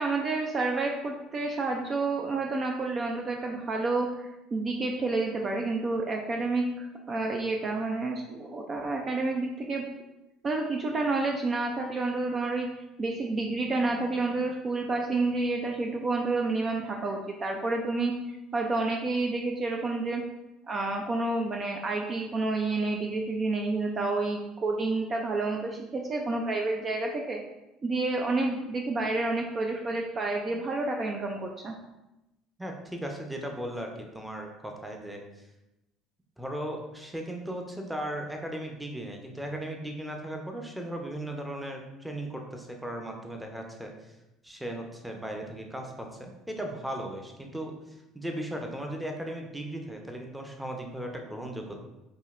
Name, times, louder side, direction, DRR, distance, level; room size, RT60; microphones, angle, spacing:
voice 1, 0.0-4.1 4.5-9.9 10.4-12.7 13.0-18.1 18.5-20.2 20.7-27.4 27.8-31.7, right 3 dB, 40° right, 1 dB, 0.4 m, -29 dB
voice 2, 32.6-35.2 36.4-43.9 44.4-47.7 48.1-51.8, right 1 dB, 5° right, 2 dB, 0.7 m, -37 dB
4.9 x 2.7 x 2.5 m, 0.96 s
hypercardioid pair, 75°, 0 cm